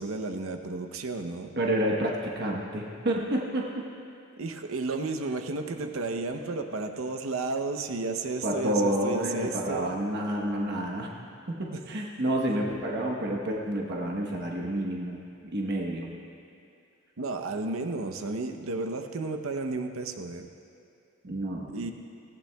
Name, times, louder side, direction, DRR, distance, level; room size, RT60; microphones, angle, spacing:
voice 1, 0.0-1.6 4.4-10.0 11.7-11.8 17.2-20.5 21.7-21.9, right 3 dB, 80° right, 6 dB, 0.8 m, -32 dB
voice 2, 1.6-3.7 8.4-11.1 11.5-15.2 15.5-16.1 21.2-21.9, right 1 dB, 55° right, -1 dB, 1.1 m, -29 dB
18.5 x 14.5 x 2.3 m, 2.5 s
head